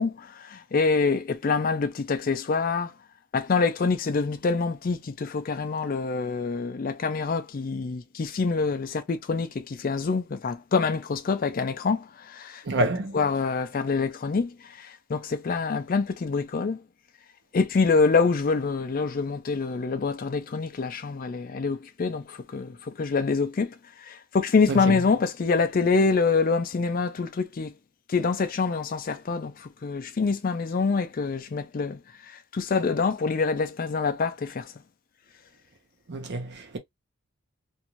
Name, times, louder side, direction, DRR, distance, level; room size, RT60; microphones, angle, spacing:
voice 1, 0.0-2.9 3.3-12.9 13.1-16.8 17.5-27.7 28.1-34.7, left 4 dB, 40° left, 0.4 m, -26 dB
voice 2, 12.7-13.2 24.7-24.9 36.1-36.8, right 2 dB, 50° right, 0.7 m, -28 dB
2.6 x 2.3 x 3.0 m
head